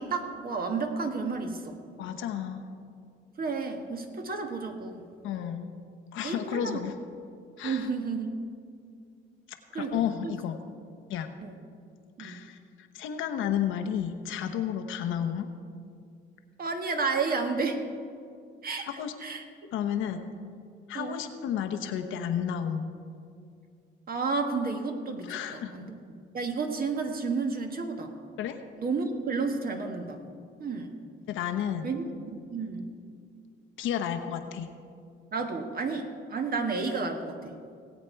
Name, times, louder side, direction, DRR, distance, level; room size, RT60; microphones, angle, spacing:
voice 1, 0.0-1.8 3.4-5.1 6.2-6.8 7.6-8.3 9.7-10.3 11.4-11.5 12.2-12.4 16.6-17.8 18.6-18.9 19.2-19.4 20.9-21.2 24.1-26.0 26.3-28.1 28.8-30.2 30.6-30.9 31.8-32.9 35.3-37.6, right 4 dB, 50° right, 4 dB, 1.5 m, -31 dB
voice 2, 2.0-2.7 5.2-5.7 6.1-6.9 7.6-7.9 9.5-10.6 11.1-11.3 12.2-15.5 18.8-19.1 19.7-20.2 20.9-22.9 25.2-25.7 28.4-28.6 31.3-31.9 33.8-34.7, left 9 dB, 90° left, 7 dB, 1.0 m, -32 dB
18.5 x 8.3 x 4.6 m, 2.3 s
cardioid pair, 90°, 20 cm